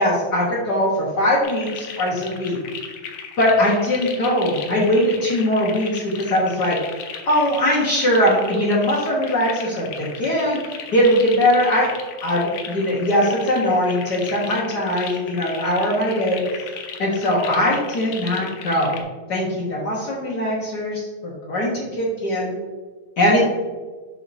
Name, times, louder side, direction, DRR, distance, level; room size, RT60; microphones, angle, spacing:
voice 1, 0.0-2.6 3.4-6.8 7.3-10.6 10.9-11.9 12.2-16.7 17.0-19.0 19.3-22.5 23.2-23.4, left 1 dB, 55° left, -5 dB, 1.6 m, -21 dB
sound 1, 1.4-19.0, left 6 dB, 70° left, 1.5 m, -36 dB
7.0 x 5.9 x 2.6 m, 1.4 s
omnidirectional pair, 2.3 m